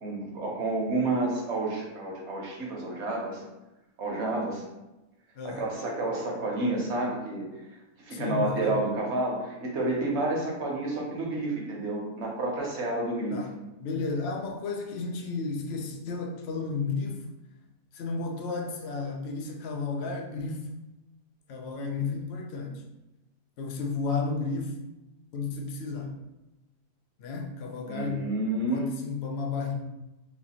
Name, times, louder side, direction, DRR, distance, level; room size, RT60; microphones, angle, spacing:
voice 1, 0.0-3.4 4.0-4.6 5.4-7.5 8.0-13.3 27.9-28.9, right 2 dB, 55° right, -2 dB, 1.0 m, -30 dB
voice 2, 5.4-5.7 8.1-8.8 13.3-13.5 13.8-17.2 17.9-20.7 21.5-22.8 23.6-24.7 25.3-26.1 27.2-28.3 28.7-29.7, left 4 dB, 85° left, 2 dB, 0.5 m, -32 dB
4.0 x 2.5 x 2.8 m, 0.99 s
omnidirectional pair, 1.7 m